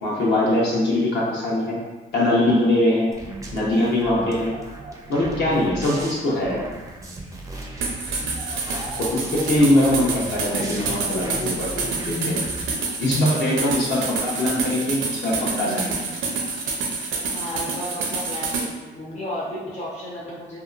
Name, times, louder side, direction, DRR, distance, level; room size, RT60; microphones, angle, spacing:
voice 1, 0.0-1.8 2.1-3.1 3.5-4.5 5.1-6.6 9.0-12.4 13.0-16.0, left 1 dB, 60° left, -5 dB, 0.9 m, -22 dB
sound 1, 3.1-12.7, right 2 dB, 15° right, 0.4 m, -36 dB
sound 2, 7.8-18.7, right 4 dB, 75° right, 0.6 m, -28 dB
voice 2, 17.3-20.6, equal, 35° left, -5 dB, 0.6 m, -33 dB
2.7 x 2.2 x 2.4 m, 1.3 s
cardioid pair, 90°, 20 cm